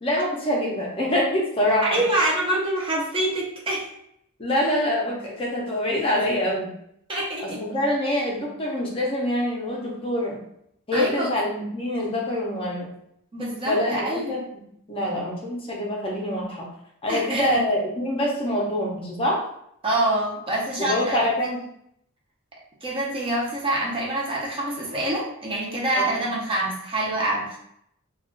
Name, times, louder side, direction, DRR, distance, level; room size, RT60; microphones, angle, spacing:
voice 1, 0.0-2.0 4.4-6.7 7.4-10.4 10.9-12.9 13.6-14.6 14.9-16.7 17.0-19.4 20.8-21.6 25.9-26.2, left 1 dB, 25° left, -3 dB, 0.5 m, -25 dB
voice 2, 1.8-3.9 7.1-7.6 10.9-11.3 13.3-14.3 17.1-17.6 19.8-21.2 22.8-27.6, right 1 dB, 25° right, -3 dB, 0.6 m, -26 dB
2.4 x 2.2 x 3.6 m, 0.73 s
head